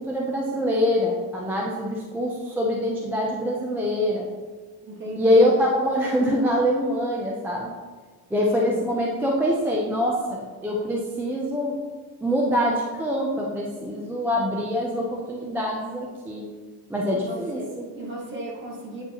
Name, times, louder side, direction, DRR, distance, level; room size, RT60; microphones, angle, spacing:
voice 1, 0.0-4.3 5.2-7.7 8.3-11.8 12.2-16.4 16.9-17.9, equal, 5° right, -2 dB, 0.3 m, -24 dB
voice 2, 4.8-5.5 8.4-8.8 17.1-19.0, right 1 dB, 35° right, -2 dB, 1.3 m, -36 dB
8.3 x 4.6 x 2.8 m, 1.4 s
cardioid pair, 180°, 34 cm